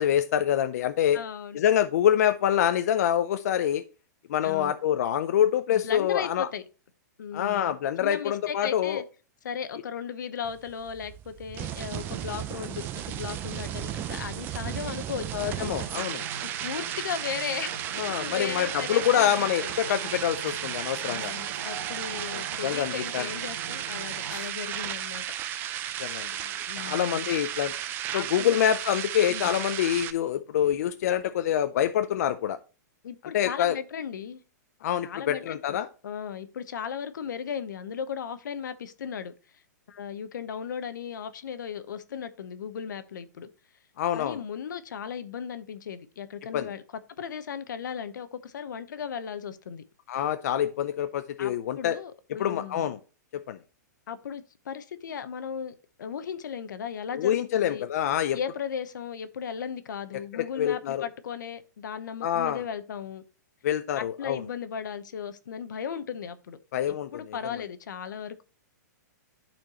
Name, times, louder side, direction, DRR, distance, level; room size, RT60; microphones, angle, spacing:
voice 1, 0.0-1.2 1.5-3.8 4.3-6.5 7.3-9.0 15.3-16.2 18.0-21.3 22.3-23.3 26.0-26.3 26.8-27.7 28.1-32.6 33.3-33.8 34.8-35.9 44.0-44.4 46.5-46.7 50.1-52.0 52.4-53.0 53.3-53.6 57.1-58.4 60.1-61.1 62.2-62.6 63.6-64.4 66.7-67.1, left 10 dB, 60° left, 0.5 m, -26 dB
voice 2, 1.1-1.6 4.4-4.7 5.7-6.6 7.2-9.0 9.4-16.0 16.3-17.8 18.1-19.7 21.1-25.4 26.7-27.3 28.1-28.6 29.3-29.6 33.0-34.4 35.0-35.8 36.0-39.3 39.9-43.5 44.1-46.8 47.2-49.8 51.4-52.9 54.1-57.9 58.3-63.2 64.0-66.6 67.1-68.4, left 7 dB, 80° left, 0.9 m, -36 dB
sound 1, 10.4-30.1, right 11 dB, 20° right, 0.4 m, -34 dB
sound 2, 15.3-24.5, right 7 dB, 65° right, 1.5 m, -42 dB
12.0 x 4.4 x 2.9 m
hypercardioid pair, 155°, 10 cm